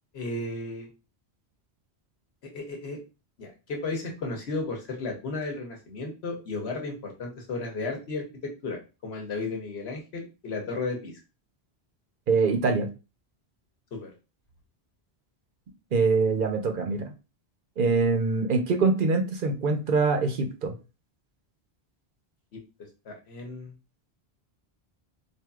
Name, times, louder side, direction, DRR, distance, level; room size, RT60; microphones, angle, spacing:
voice 1, 0.1-0.9 2.5-3.0 3.4-11.2 13.9-14.1 22.5-22.6 23.0-23.7, left 3 dB, 80° left, 1 dB, 1.2 m, -34 dB
voice 2, 12.3-12.9 15.9-17.1 17.8-20.7, right 4 dB, 60° right, 4 dB, 0.8 m, -24 dB
4.5 x 2.7 x 2.3 m, 0.30 s
omnidirectional pair, 1.1 m